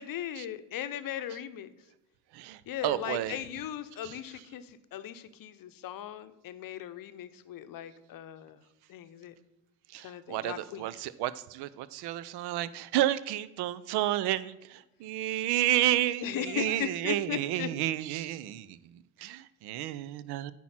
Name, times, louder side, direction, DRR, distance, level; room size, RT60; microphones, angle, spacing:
voice 1, 0.0-1.7 2.7-8.6 8.9-9.3 10.0-11.1 16.2-17.7, left 11 dB, 45° left, 11 dB, 0.8 m, -38 dB
voice 2, 2.3-3.4 4.0-4.2 9.9-18.8 19.2-20.5, right 14 dB, 55° right, 17 dB, 0.6 m, -31 dB
9.2 x 4.5 x 5.8 m, 1.0 s
hypercardioid pair, 60°, 49 cm